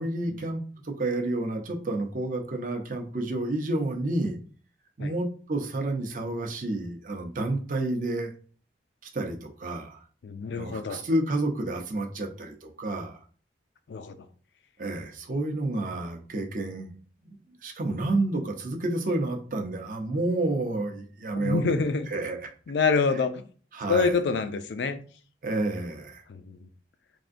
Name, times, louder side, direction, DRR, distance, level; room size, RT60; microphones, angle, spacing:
voice 1, 0.0-4.4 5.0-8.3 9.1-10.0 10.5-13.2 14.8-16.9 17.2-17.4 17.6-22.5 23.7-24.2 25.4-26.2, right 2 dB, 50° right, 3 dB, 0.6 m, -30 dB
voice 2, 10.2-11.0 13.9-14.2 21.4-22.1 22.7-23.4 23.9-25.0 26.3-26.7, left 4 dB, 80° left, 10 dB, 0.4 m, -26 dB
3.4 x 2.5 x 2.5 m, 0.41 s
head